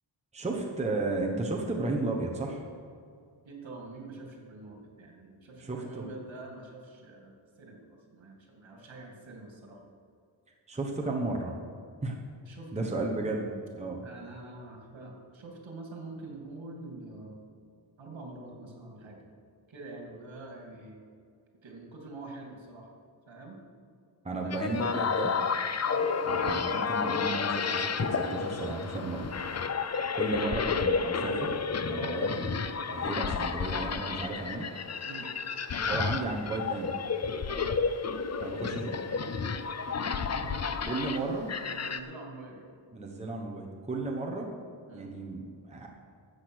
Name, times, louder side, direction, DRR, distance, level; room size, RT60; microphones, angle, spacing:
voice 1, 0.3-2.6 5.6-6.1 10.7-11.6 12.0-12.2 12.7-13.5 13.8-14.1 24.2-25.3 26.4-29.2 30.1-32.6 32.9-34.7 35.8-36.9 38.4-38.9 40.9-41.5 42.9-44.5 44.9-45.9, right 2 dB, 15° right, -1 dB, 1.1 m, -34 dB
voice 2, 3.4-9.8 12.5-13.1 14.0-17.4 18.0-19.2 19.7-21.0 21.6-22.9 23.3-23.6 24.3-24.6 25.8-26.1 29.9-30.5 32.0-32.2 35.0-35.3 37.5-37.8 40.0-41.3 41.7-42.7 44.9-45.1, right 3 dB, 65° right, 0 dB, 2.7 m, -45 dB
sound 1, 24.5-42.0, left 5 dB, 35° left, 0.5 m, -31 dB
13.0 x 8.2 x 6.4 m, 2.2 s
wide cardioid pair, 180°, 48 cm